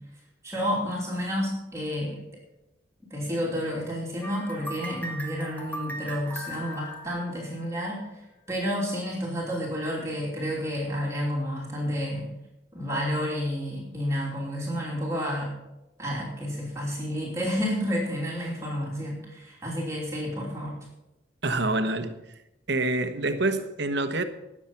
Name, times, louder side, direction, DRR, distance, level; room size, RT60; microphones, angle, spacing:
voice 1, 0.4-2.2 3.1-8.2 8.5-12.3 12.7-15.5 16.0-20.8, equal, 15° right, 2.9 m, -30 dB
sound 1, 4.2-8.0, right 1 dB, 10° left, 1.6 m, -39 dB
voice 2, 21.4-22.2 22.7-24.2, right 2 dB, 60° right, 1.2 m, -26 dB
19.0 x 7.4 x 5.8 m
head